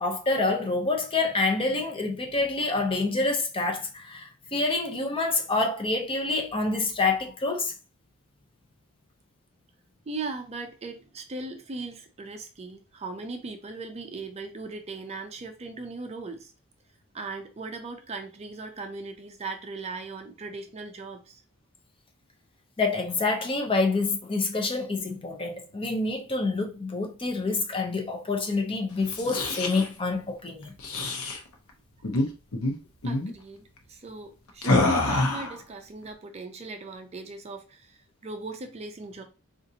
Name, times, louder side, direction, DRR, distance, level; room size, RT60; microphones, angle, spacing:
voice 1, 0.0-7.7 22.8-30.7, left 3 dB, 25° left, 0.5 m, -27 dB
voice 2, 10.1-16.5 17.1-21.4 33.0-39.2, right 3 dB, 30° right, 0.4 m, -38 dB
sound 1, 29.0-29.9 30.8-31.4 32.0-32.3 32.5-32.7 33.0-33.3 34.6-35.6, left 2 dB, 80° left, 0.7 m, -26 dB
3.8 x 2.5 x 2.7 m
head